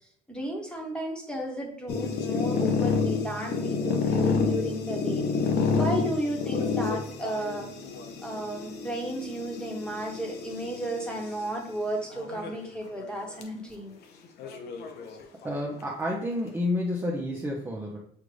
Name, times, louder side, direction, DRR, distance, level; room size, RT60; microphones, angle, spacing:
voice 1, 0.3-5.2 5.8-7.6 8.2-14.0, right 1 dB, 5° left, -1 dB, 1.3 m, -33 dB
sound 1, 1.9-11.3 12.1-12.7 13.0-13.1 13.4-13.5 14.4-15.5, left 5 dB, 75° left, 0.7 m, -29 dB
voice 2, 15.4-18.0, left 1 dB, 15° right, -3 dB, 0.7 m, -30 dB
6.5 x 2.5 x 3.3 m, 0.70 s
cardioid pair, 110°, 17 cm